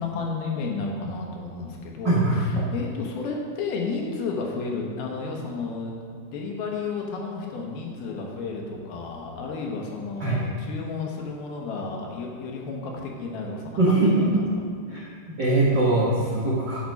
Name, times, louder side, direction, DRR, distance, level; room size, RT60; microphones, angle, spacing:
voice 1, 0.0-14.4, left 4 dB, 80° left, 0 dB, 3.1 m, -32 dB
voice 2, 2.0-2.7 10.2-10.4 13.8-14.3 14.9-16.8, right 2 dB, 85° right, -6 dB, 0.9 m, -22 dB
11.0 x 5.7 x 5.3 m, 2.1 s
omnidirectional pair, 4.3 m